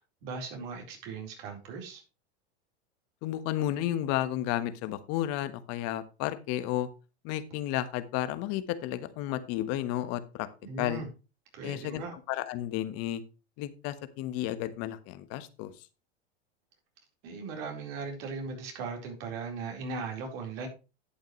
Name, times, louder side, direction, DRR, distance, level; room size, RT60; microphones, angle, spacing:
voice 1, 0.0-2.0 10.6-11.1 11.5-12.1 17.2-20.7, right 4 dB, 60° right, 2 dB, 4.2 m, -38 dB
voice 2, 3.2-6.9 7.2-10.5 10.8-11.0 11.6-13.2 13.6-15.7, left 13 dB, 50° left, 12 dB, 1.3 m, -32 dB
11.5 x 8.2 x 3.2 m, 0.31 s
hypercardioid pair, 115°, 32 cm